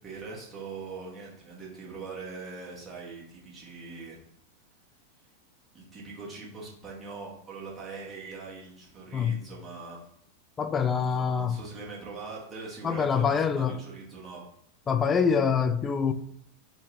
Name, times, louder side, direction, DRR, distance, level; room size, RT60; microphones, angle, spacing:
voice 1, 0.0-4.2 5.7-10.0 10.9-14.4, right 4 dB, 20° right, 1.5 m, -42 dB
voice 2, 10.6-11.6 12.8-13.8 14.9-16.1, left 6 dB, 20° left, 0.4 m, -25 dB
3.6 x 2.7 x 4.7 m
figure-of-eight pair, 90°, 0 cm